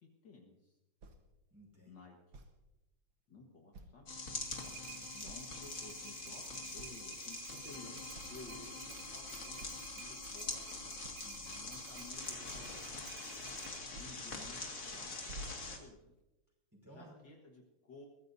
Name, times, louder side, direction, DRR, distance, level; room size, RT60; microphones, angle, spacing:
voice 1, 0.0-0.8 1.9-2.2 3.3-4.1 5.2-11.0 11.6-13.1 14.0-15.1 15.5-16.1 16.8-18.1, left 3 dB, 60° left, 1 dB, 2.2 m, -55 dB
sound 1, 1.0-1.2 2.3-2.5 3.7-4.1 4.6-4.7 5.2-5.6 6.0-6.4 6.8-7.1 7.7-7.8 8.1-8.4 9.2-9.3 9.6-9.8 11.0-11.3 12.5-12.9 13.9-14.2 14.6-14.9 15.3-16.2, right 2 dB, 70° right, 2.1 m, -51 dB
voice 2, 1.5-2.0 4.6-5.3 11.2-11.7 16.7-17.1, right 1 dB, 10° right, -2 dB, 5.5 m, -58 dB
sound 2, 4.1-15.8, left 3 dB, 40° left, 2.4 m, -44 dB
sound 3, 4.1-13.8, right 11 dB, 90° right, 1.7 m, -54 dB
22.5 x 15.5 x 2.7 m, 0.98 s
omnidirectional pair, 2.3 m